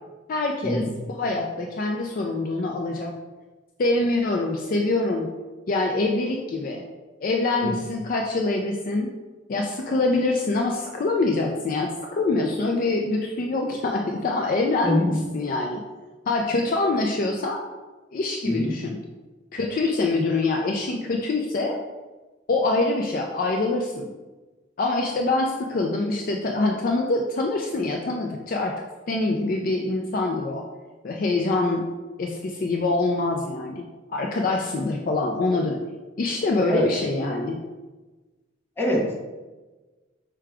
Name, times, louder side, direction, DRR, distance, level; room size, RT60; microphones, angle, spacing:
voice 1, 0.3-0.8 1.1-3.1 3.8-5.3 5.7-6.8 7.2-9.1 9.5-15.0 15.3-15.8 16.3-17.6 18.1-19.0 19.5-21.8 22.5-24.1 24.8-28.7 29.1-30.6 31.0-31.8 32.2-33.9 34.1-35.8 36.2-37.6, left 2 dB, 45° left, 1 dB, 0.4 m, -25 dB
voice 2, 14.8-15.2 18.4-18.7 36.7-36.9 38.8-39.1, equal, 10° left, -4 dB, 0.9 m, -23 dB
4.8 x 2.3 x 4.7 m, 1.2 s
head